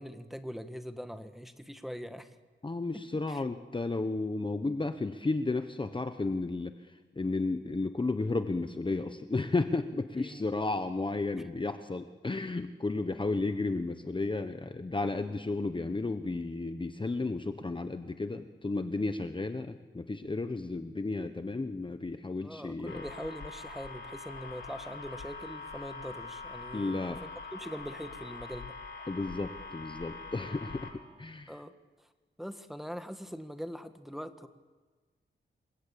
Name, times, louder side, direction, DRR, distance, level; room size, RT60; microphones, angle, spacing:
voice 1, 0.0-2.3 3.3-3.4 10.2-10.4 11.4-11.5 22.4-27.2 27.5-28.7 31.5-31.7 32.4-34.5, equal, ahead, 8 dB, 1.6 m, -42 dB
voice 2, 2.6-23.0 26.7-27.2 29.1-31.6, left 3 dB, 25° left, 9 dB, 1.1 m, -33 dB
sound 1, 22.9-30.9, left 3 dB, 70° left, 4.1 m, -44 dB
27.5 x 22.0 x 8.5 m, 1.4 s
wide cardioid pair, 95°, 20 cm